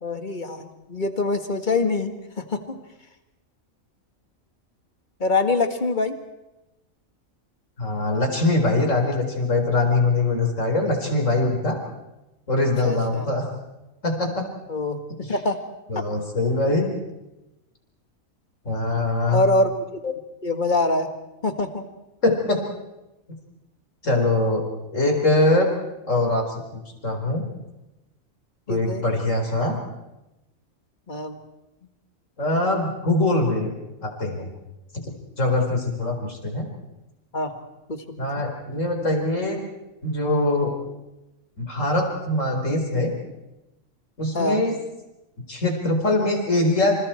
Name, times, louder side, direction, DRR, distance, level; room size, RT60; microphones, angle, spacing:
voice 1, 0.0-2.8 5.2-6.1 12.8-13.3 14.7-15.0 15.3-15.6 19.3-20.1 20.4-21.1 21.4-21.8 28.7-29.0 31.1-31.4 37.3-37.5 37.9-38.0 38.4-38.5 44.3-44.7, left 2 dB, 35° left, 7 dB, 2.0 m, -24 dB
voice 2, 7.8-11.8 12.5-13.5 14.0-14.4 15.9-16.9 18.6-19.4 22.2-22.6 24.0-24.6 24.9-25.7 26.1-27.4 28.7-29.8 32.4-33.7 34.0-34.5 35.4-36.7 38.2-39.6 40.0-40.7 41.6-43.1 44.2-44.7 45.5-46.9, left 2 dB, 65° left, 2 dB, 4.7 m, -22 dB
29.0 x 28.0 x 4.5 m, 0.97 s
omnidirectional pair, 1.4 m